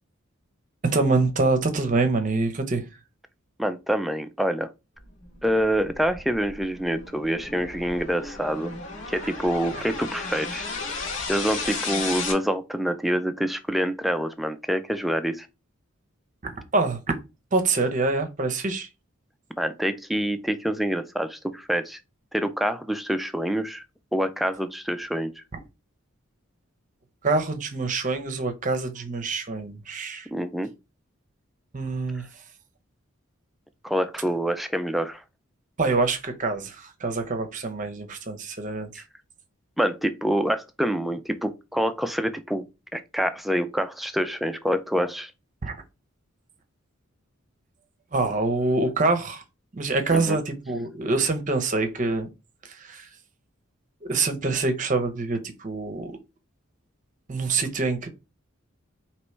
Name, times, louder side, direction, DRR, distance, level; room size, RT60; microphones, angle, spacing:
voice 1, 0.8-2.9 16.4-17.2 17.5-18.9 27.2-30.3 31.7-32.3 35.8-39.0 45.6-45.8 48.1-49.4 49.7-52.3 52.6-53.1 54.0-56.1 57.3-58.1, right 3 dB, 35° right, 0.7 m, -25 dB
voice 2, 3.6-4.7 5.4-8.7 9.1-10.6 11.3-15.5 19.6-22.0 22.3-23.8 24.1-25.3 30.3-30.7 33.8-35.2 38.9-39.0 39.8-42.6 42.9-45.3 50.1-50.4, equal, ahead, 0.3 m, -26 dB
sound 1, 5.4-12.3, left 4 dB, 65° left, 1.6 m, -34 dB
4.6 x 3.0 x 3.1 m
head